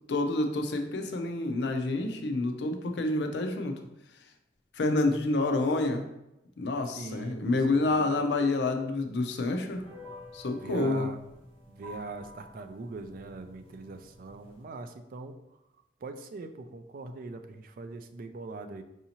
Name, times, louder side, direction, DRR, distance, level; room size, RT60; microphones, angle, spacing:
voice 1, 0.1-3.8 4.7-6.0 6.6-9.8 10.3-11.1, left 2 dB, 70° left, 5 dB, 0.5 m, -28 dB
voice 2, 7.0-8.1 10.6-11.2 11.7-15.6 16.0-18.8, right 3 dB, 50° right, 8 dB, 0.3 m, -42 dB
sound 1, 9.7-14.6, left 1 dB, 30° right, 1.3 m, -50 dB
4.8 x 2.7 x 2.8 m, 0.89 s
head